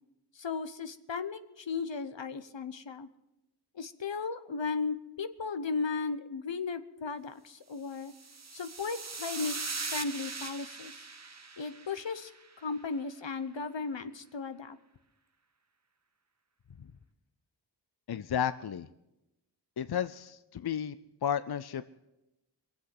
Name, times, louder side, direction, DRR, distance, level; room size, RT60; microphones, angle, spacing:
voice 1, 0.3-3.1 3.7-8.1 8.5-9.6 9.9-11.0 11.6-12.3 12.6-14.8 16.8-16.9, left 4 dB, 80° left, 11 dB, 0.9 m, -36 dB
sound 1, 8.0-12.5, right 4 dB, 35° right, 0.8 m, -40 dB
voice 2, 18.1-18.9 19.8-21.0 21.2-21.9, left 9 dB, 60° left, 13 dB, 0.5 m, -32 dB
23.5 x 8.0 x 6.1 m, 0.93 s
wide cardioid pair, 55°, 44 cm